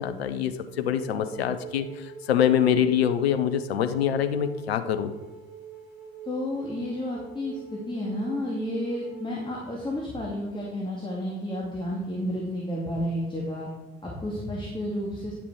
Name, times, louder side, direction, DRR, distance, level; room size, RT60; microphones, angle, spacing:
voice 1, 0.0-5.1, left 9 dB, 80° left, 9 dB, 0.7 m, -25 dB
Wind instrument woodwind instrument, 1.0-9.4, right 5 dB, 5° right, 3.1 m, -43 dB
voice 2, 6.3-13.7 14.0-15.3, left 1 dB, 15° left, -3 dB, 2.5 m, -31 dB
10.0 x 6.0 x 4.7 m, 1.2 s
figure-of-eight pair, 50°, 31 cm